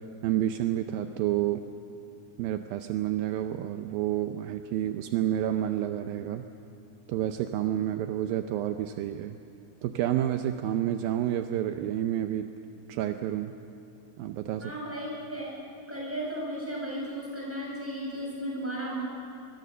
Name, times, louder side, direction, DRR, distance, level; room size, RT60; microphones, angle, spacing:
voice 1, 0.2-1.6 2.4-6.5 7.1-9.4 9.8-12.5 12.9-13.5 14.2-14.7, right 12 dB, 80° right, 7 dB, 2.4 m, -29 dB
voice 2, 14.6-15.5 15.9-19.0, right 1 dB, 5° right, -4 dB, 7.6 m, -35 dB
26.0 x 21.5 x 6.9 m, 2.7 s
omnidirectional pair, 4.3 m